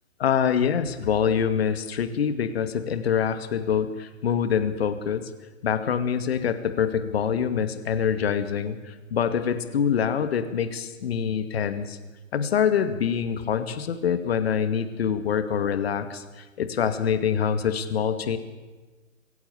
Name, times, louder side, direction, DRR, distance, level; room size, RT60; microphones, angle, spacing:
voice 1, 0.2-5.3 5.6-12.0 12.3-18.4, left 7 dB, 50° left, 10 dB, 2.3 m, -25 dB
23.0 x 16.0 x 8.5 m, 1.2 s
figure-of-eight pair, 135°, 40 cm